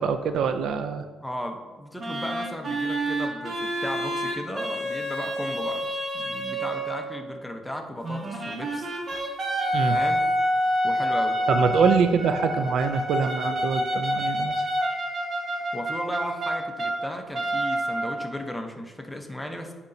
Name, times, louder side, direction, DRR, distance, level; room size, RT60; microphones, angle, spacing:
voice 1, 0.0-1.0 9.1-9.2 9.7-10.0 11.5-14.7, right 6 dB, 75° right, 9 dB, 0.4 m, -24 dB
voice 2, 1.2-5.9 6.1-8.9 9.9-10.3 10.8-11.4 15.7-19.7, left 1 dB, 5° left, 3 dB, 0.8 m, -35 dB
sound 1, 2.0-7.1 8.0-17.0 17.3-18.4, equal, 45° right, 1.4 m, -28 dB
9.3 x 4.2 x 2.7 m, 1.4 s
cardioid pair, 90°, 0 cm